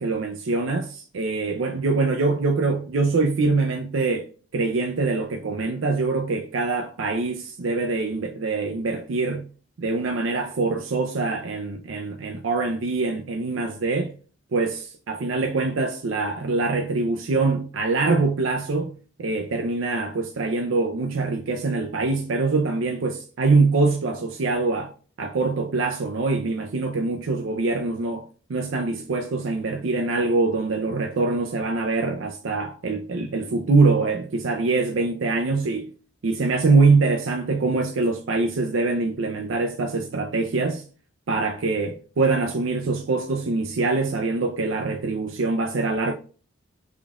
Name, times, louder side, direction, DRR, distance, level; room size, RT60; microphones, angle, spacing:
voice 1, 0.0-4.3 4.5-9.4 9.8-14.1 14.5-18.9 19.2-24.9 25.2-35.9 36.2-40.8 41.3-46.1, right 3 dB, 85° right, 0.5 m, -24 dB
3.6 x 3.5 x 2.4 m
head